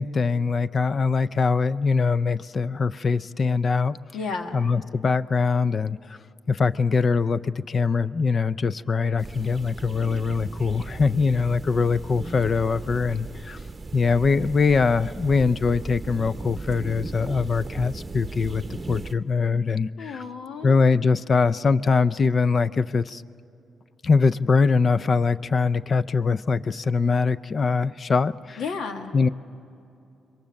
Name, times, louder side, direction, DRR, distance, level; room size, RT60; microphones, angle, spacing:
voice 1, 0.0-4.0 4.5-6.0 6.5-13.6 13.9-20.2 20.6-23.2 24.0-28.6 29.1-29.3, left 4 dB, 45° left, 15 dB, 0.5 m, -22 dB
voice 2, 4.1-4.6 20.0-20.8 28.6-29.1, left 4 dB, 85° left, 5 dB, 1.7 m, -32 dB
sound 1, 9.2-19.1, right 3 dB, 25° right, 0.9 m, -37 dB
27.0 x 22.5 x 6.5 m, 2.7 s
cardioid pair, 95°, 0 cm